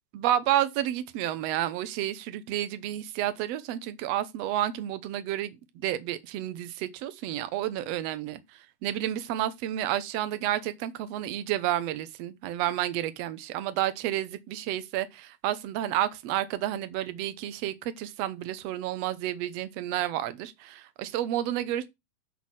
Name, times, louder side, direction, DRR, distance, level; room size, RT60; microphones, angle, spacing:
voice 1, 0.1-21.9, right 12 dB, 70° right, 1.6 m, -30 dB
8.2 x 4.1 x 6.2 m
omnidirectional pair, 3.8 m